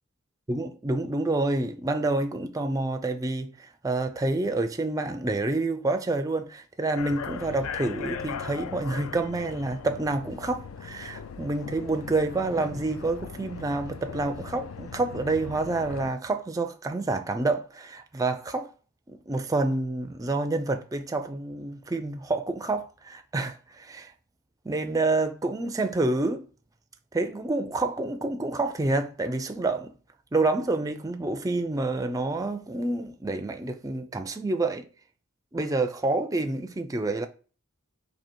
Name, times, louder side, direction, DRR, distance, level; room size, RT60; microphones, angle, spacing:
voice 1, 0.5-18.7 19.1-24.1 24.6-26.4 27.1-29.9 30.3-34.9 35.5-37.3, right 2 dB, 15° right, 0.4 m, -28 dB
sound 1, 7.0-16.1, left 6 dB, 70° left, 0.4 m, -39 dB
4.4 x 2.8 x 4.4 m
head